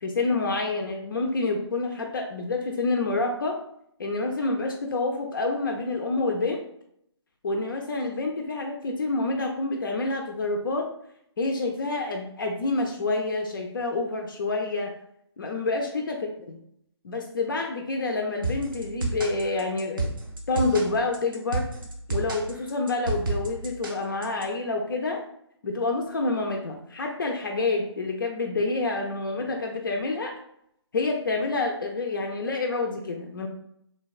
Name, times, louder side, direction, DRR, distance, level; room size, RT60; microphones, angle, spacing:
voice 1, 0.0-3.6 4.0-6.7 7.4-10.9 11.4-14.9 15.4-16.1 17.0-20.1 20.5-21.7 22.1-25.2 25.6-30.3 30.9-33.5, left 3 dB, 50° left, 2 dB, 0.4 m, -28 dB
sound 1, 18.4-24.4, right 2 dB, 50° right, 0.5 m, -31 dB
3.2 x 2.1 x 2.3 m, 0.73 s
figure-of-eight pair, 145°, 15 cm